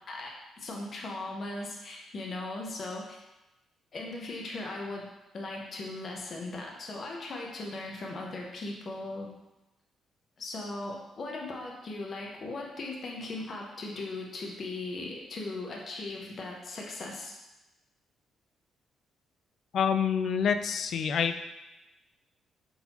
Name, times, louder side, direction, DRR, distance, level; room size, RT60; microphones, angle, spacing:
voice 1, 0.1-3.2 3.9-9.3 10.4-17.3, left 2 dB, 45° left, -1 dB, 0.7 m, -38 dB
voice 2, 19.7-21.3, left 7 dB, 65° left, 7 dB, 0.3 m, -27 dB
3.9 x 3.8 x 2.9 m, 1.0 s
cardioid pair, 90°, 0 cm